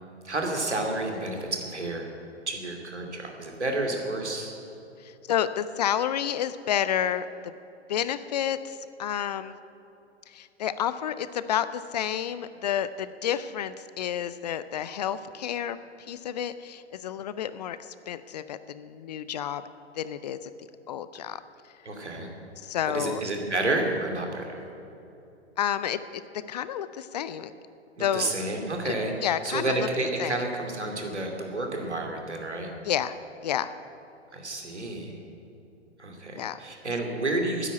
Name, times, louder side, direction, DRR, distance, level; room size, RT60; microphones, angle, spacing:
voice 1, 0.2-2.1 2.5-4.5 21.8-22.3 22.9-24.6 28.0-32.7 34.3-35.2 36.0-37.7, right 2 dB, 75° right, 2 dB, 2.8 m, -30 dB
voice 2, 5.0-7.5 7.9-9.6 10.3-15.8 16.1-19.6 20.0-20.5 20.9-21.4 22.6-23.2 25.6-26.2 26.5-27.5 28.0-28.3 28.8-28.9 29.2-29.8 30.2-30.4 32.8-33.1 33.4-33.7 36.4-36.6, left 10 dB, 40° left, 14 dB, 0.5 m, -30 dB
13.0 x 10.0 x 8.8 m, 2.9 s
figure-of-eight pair, 110°, 34 cm